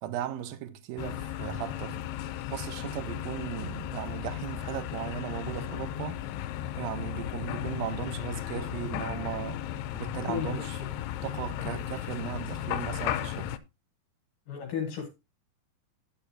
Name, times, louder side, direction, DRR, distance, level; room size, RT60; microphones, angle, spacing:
voice 1, 0.0-6.3 6.8-10.8 11.2-13.5, right 12 dB, 75° right, 2.6 m, -37 dB
sound 1, 1.0-13.6, left 12 dB, 90° left, 2.7 m, -35 dB
voice 2, 10.3-10.9 14.5-15.1, left 7 dB, 65° left, 2.7 m, -34 dB
10.0 x 8.8 x 2.8 m
omnidirectional pair, 4.5 m